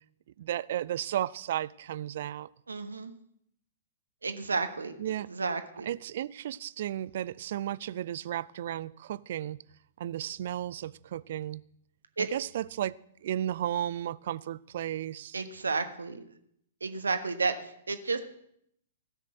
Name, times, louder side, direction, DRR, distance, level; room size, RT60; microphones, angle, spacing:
voice 1, 0.4-2.5 5.0-5.3 5.8-9.6 10.0-11.6 12.2-12.9 13.2-15.4, right 11 dB, 50° right, 0.4 m, -34 dB
voice 2, 2.7-3.1 4.2-5.9 12.2-12.3 15.3-16.2 16.8-18.2, right 4 dB, 70° right, 1.3 m, -32 dB
16.0 x 6.7 x 7.9 m
figure-of-eight pair, 110°, 0 cm